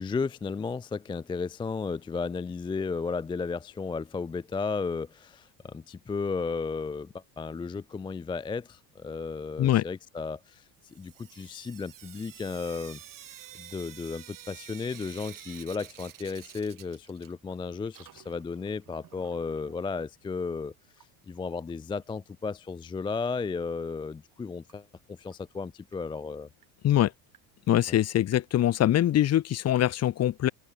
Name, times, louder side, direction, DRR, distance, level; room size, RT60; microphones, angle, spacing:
voice 1, 0.0-13.0 13.6-20.7 21.3-26.5 27.9-28.0, left 4 dB, 10° left, 0.4 m, -34 dB
Sink (filling or washing) / Drip, 10.8-17.6 17.8-19.8 20.9-21.0 21.4-21.5 21.7-21.8 24.7-24.8 25.3-25.4 25.9-26.0 26.6-26.7 27.3-27.4 28.3-28.4, right 11 dB, 45° right, 7.4 m, -49 dB
voice 2, 27.7-30.5, left 12 dB, 35° left, 0.8 m, -23 dB
open air
supercardioid pair, 110°, 43 cm